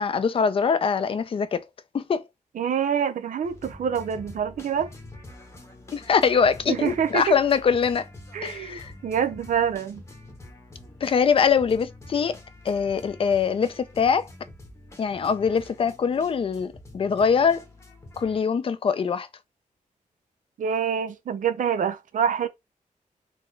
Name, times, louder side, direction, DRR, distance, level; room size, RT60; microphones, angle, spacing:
voice 1, 0.0-1.7 1.9-2.2 5.9-8.1 8.4-8.9 11.0-12.4 12.7-14.3 15.0-17.6 18.2-19.3, left 6 dB, 40° left, 0.4 m, -23 dB
voice 2, 2.6-4.9 6.7-7.3 8.3-10.0 20.6-22.5, right 8 dB, 70° right, 0.4 m, -26 dB
sound 1, 3.4-18.4, left 1 dB, 20° left, 0.9 m, -46 dB
3.9 x 2.0 x 3.2 m
wide cardioid pair, 165°, 14 cm